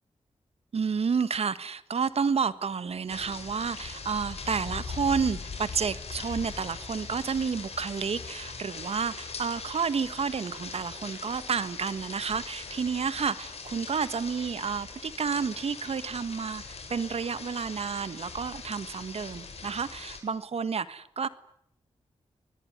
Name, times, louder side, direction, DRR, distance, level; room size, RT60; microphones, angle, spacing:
voice 1, 0.7-21.3, right 6 dB, 65° right, 14 dB, 1.5 m, -30 dB
sound 1, 3.1-20.2, left 4 dB, 65° left, 7.3 m, -41 dB
27.5 x 21.0 x 9.7 m, 0.70 s
cardioid pair, 65°, 11 cm